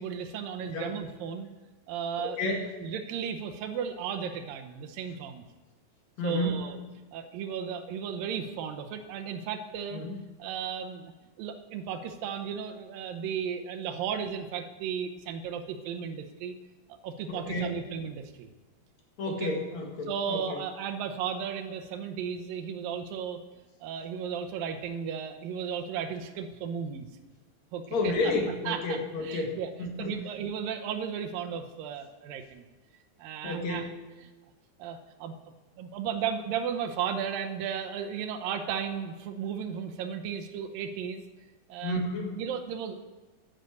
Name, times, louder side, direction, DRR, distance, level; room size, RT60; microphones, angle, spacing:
voice 1, 0.0-1.5 1.9-2.5 2.8-5.5 6.2-6.8 7.1-10.0 10.4-11.1 11.4-16.5 17.0-18.5 19.3-19.5 20.1-23.4 23.8-27.1 27.7-28.3 28.7-29.7 30.0-32.7 33.2-33.9 34.2-34.3 34.8-35.4 35.8-41.2 41.7-42.0 42.4-43.0, right 7 dB, 85° right, 6 dB, 2.6 m, -35 dB
voice 2, 2.2-2.7 6.2-6.5 9.9-10.2 17.3-17.7 19.2-20.6 27.9-29.5 29.8-30.1 33.4-33.9 41.8-42.4, left 2 dB, 55° left, 1 dB, 2.8 m, -31 dB
10.5 x 9.9 x 7.9 m, 1.2 s
omnidirectional pair, 4.1 m